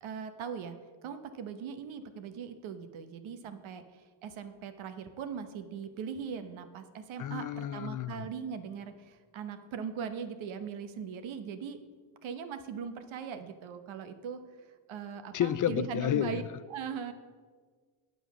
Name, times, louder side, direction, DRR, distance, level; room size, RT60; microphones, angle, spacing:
voice 1, 0.0-11.8 12.2-14.4 14.9-16.4 16.7-17.1, right 7 dB, 80° right, 9 dB, 1.1 m, -40 dB
voice 2, 7.2-8.3 15.3-16.5, left 10 dB, 45° left, 15 dB, 0.4 m, -31 dB
9.5 x 7.9 x 6.0 m, 1.6 s
cardioid pair, 105°, 47 cm